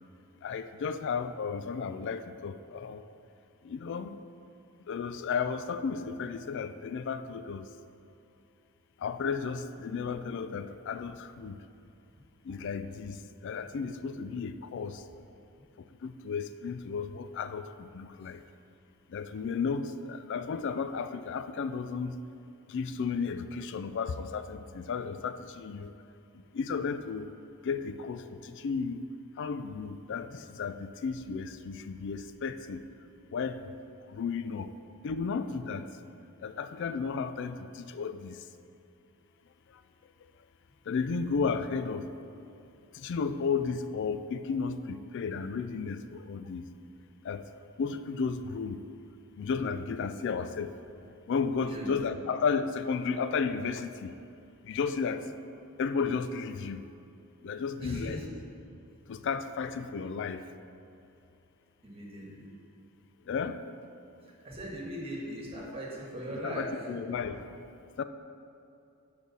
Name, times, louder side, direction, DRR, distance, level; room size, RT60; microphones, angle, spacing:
voice 1, 0.4-3.0 3.6-4.2 4.9-7.7 9.0-11.6 12.5-15.0 15.8-18.4 19.1-22.1 22.7-25.9 26.5-27.3 27.6-29.0 29.4-32.8 33.3-33.6 34.1-34.7 35.0-35.9 36.4-38.4 40.9-42.1 42.9-46.6 47.2-47.4 47.8-48.8 49.4-50.8 51.3-54.1 54.6-55.3 55.8-56.8 57.4-58.2 59.1-60.5 63.3-63.6 66.3-67.6 68.0-68.1, left 5 dB, 55° left, 11 dB, 0.3 m, -33 dB
voice 2, 51.6-51.9 57.8-58.2 61.8-62.5 64.4-66.7, equal, 25° right, -4 dB, 1.6 m, -39 dB
6.5 x 5.3 x 6.1 m, 2.7 s
head